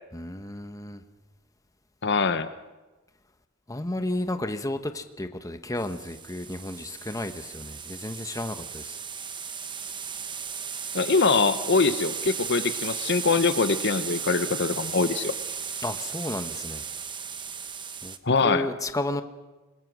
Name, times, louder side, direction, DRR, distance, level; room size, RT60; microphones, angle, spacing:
voice 1, 0.1-1.0 3.7-9.0 15.8-16.8 18.0-18.2 18.4-19.2, left 1 dB, 15° left, 8 dB, 1.1 m, -32 dB
voice 2, 2.0-2.5 10.9-15.3 18.2-18.7, left 4 dB, 55° left, 11 dB, 1.0 m, -23 dB
sound 1, 5.8-18.2, right 6 dB, 25° right, 1.0 m, -35 dB
28.0 x 21.0 x 6.2 m, 1.2 s
head